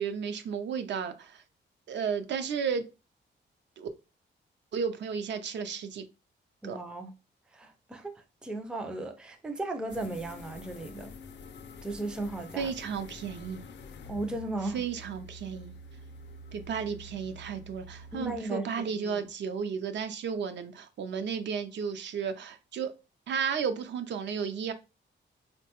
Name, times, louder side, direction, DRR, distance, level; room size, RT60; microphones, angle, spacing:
voice 1, 0.0-1.4 1.9-2.8 3.8-3.9 4.7-6.0 6.6-6.8 12.6-13.7 14.7-15.8 16.5-22.9 23.3-24.7, right 6 dB, 65° right, 0.5 m, -33 dB
voice 2, 6.6-7.1 7.5-8.1 8.4-11.2 11.8-12.7 14.1-14.8 18.1-19.3, right 2 dB, 5° right, 0.3 m, -36 dB
sound 1, 9.9-18.4, left 2 dB, 65° left, 0.4 m, -47 dB
3.7 x 2.1 x 2.8 m
wide cardioid pair, 155°, 20 cm